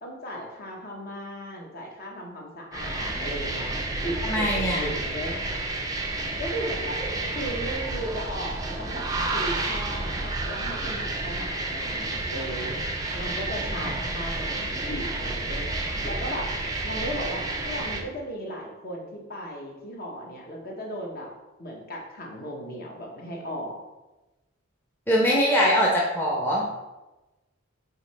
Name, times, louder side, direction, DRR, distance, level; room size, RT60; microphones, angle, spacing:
voice 1, 0.0-5.4 6.4-16.5 16.8-21.3 21.6-23.8, equal, 45° left, -1 dB, 1.2 m, -36 dB
sound 1, 2.7-18.0, right 2 dB, 15° right, 0.6 m, -30 dB
voice 2, 4.2-4.9 25.1-26.7, equal, 10° left, -4 dB, 0.8 m, -22 dB
5.6 x 4.2 x 4.2 m, 1.0 s
head